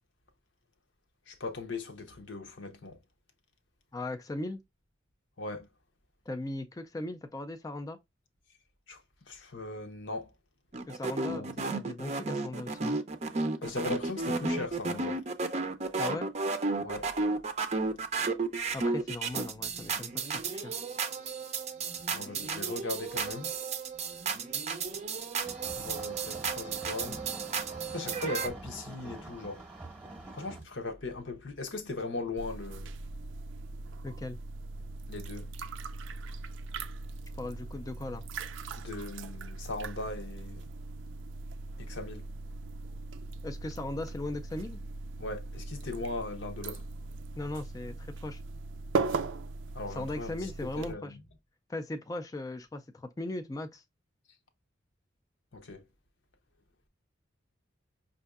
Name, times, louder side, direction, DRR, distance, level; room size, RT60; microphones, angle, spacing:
voice 1, 1.3-3.0 5.4-5.7 8.9-9.0 9.3-10.3 11.3-11.5 13.6-15.2 16.8-17.1 22.1-23.5 25.7-27.2 27.9-29.6 30.3-32.9 35.1-35.5 38.8-40.6 41.9-42.3 45.2-46.8 49.7-50.3 50.8-51.0 55.5-55.8, left 2 dB, 75° left, 0.8 m, -38 dB
voice 2, 3.9-4.6 6.3-8.0 10.9-11.4 11.7-13.0 16.0-16.3 18.7-20.8 34.0-34.4 37.3-38.2 43.4-44.8 47.4-48.4 49.9-51.2 51.7-53.8, left 2 dB, 20° left, 0.3 m, -38 dB
sound 1, 10.7-28.5, right 4 dB, 35° right, 0.5 m, -33 dB
sound 2, 25.4-30.6, right 2 dB, 5° right, 0.9 m, -46 dB
sound 3, 32.4-50.9, right 3 dB, 90° right, 0.4 m, -39 dB
5.5 x 2.5 x 2.4 m
head